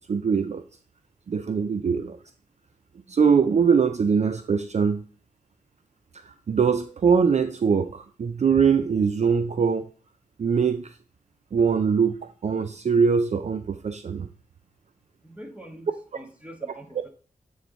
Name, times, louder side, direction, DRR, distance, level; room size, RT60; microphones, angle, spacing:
voice 1, 0.1-0.6 1.3-2.2 3.1-5.0 6.2-9.9 10.4-10.9 11.5-12.2 12.4-14.3, right 6 dB, 45° right, 9 dB, 0.4 m, -22 dB
voice 2, 15.2-17.1, right 1 dB, 10° right, 1 dB, 1.5 m, -44 dB
8.7 x 3.1 x 3.9 m, 0.40 s
cardioid pair, 65°, 16 cm